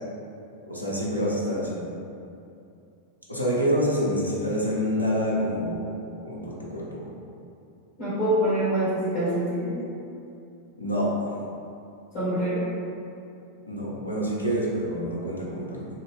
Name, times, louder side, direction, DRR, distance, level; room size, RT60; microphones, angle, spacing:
voice 1, 0.7-1.8 3.3-5.9 6.2-7.1 10.8-11.3 13.6-15.9, equal, 85° left, -6 dB, 0.6 m, -27 dB
voice 2, 8.0-9.8 12.1-12.7, right 1 dB, 35° left, -14 dB, 1.4 m, -25 dB
2.7 x 2.5 x 3.3 m, 2.6 s
figure-of-eight pair, 90°, 0 cm